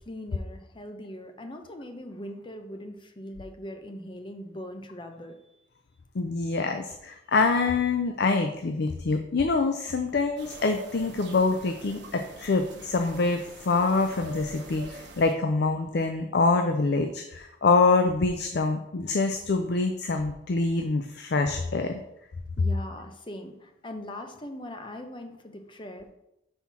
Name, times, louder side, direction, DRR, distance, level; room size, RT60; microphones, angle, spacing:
voice 1, 0.0-5.4 22.6-26.1, left 1 dB, 25° left, 5 dB, 0.8 m, -40 dB
voice 2, 6.1-22.0, left 3 dB, 60° left, 6 dB, 0.5 m, -25 dB
sound 1, 10.4-15.3, right 2 dB, 70° right, 1.1 m, -44 dB
5.6 x 4.4 x 5.9 m, 0.84 s
head